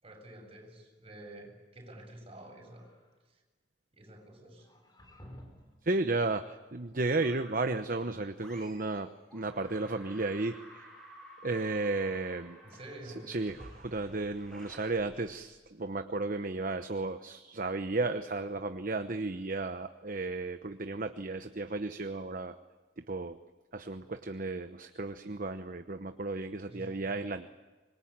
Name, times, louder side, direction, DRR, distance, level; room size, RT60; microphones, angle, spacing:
voice 1, 0.0-2.9 3.9-4.7 12.6-13.3 26.7-27.1, right 1 dB, 30° right, 1 dB, 7.3 m, -49 dB
sound 1, 2.2-3.1 4.6-5.8, equal, 25° left, 5.0 m, -53 dB
voice 2, 5.8-10.9 11.4-12.6 13.3-22.6 23.0-23.4 23.7-27.5, right 3 dB, 50° right, 8 dB, 1.0 m, -34 dB
sound 2, 7.2-7.8 8.4-9.0 9.3-15.8, equal, 5° left, 7.8 m, -53 dB
25.5 x 22.5 x 8.8 m, 1.3 s
head